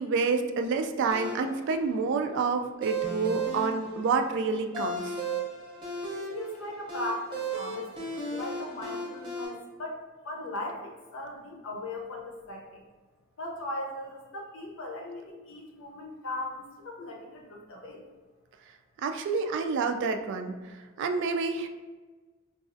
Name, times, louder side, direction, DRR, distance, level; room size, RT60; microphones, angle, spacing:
voice 1, 0.0-5.1 19.0-20.5 21.0-21.7, right 4 dB, 60° right, 6 dB, 0.3 m, -28 dB
sound 1, 1.1-9.5, right 2 dB, 25° right, 0.7 m, -36 dB
voice 2, 6.1-12.8 13.4-18.0, left 1 dB, 70° left, 0 dB, 0.7 m, -38 dB
3.9 x 2.4 x 2.5 m, 1.3 s
head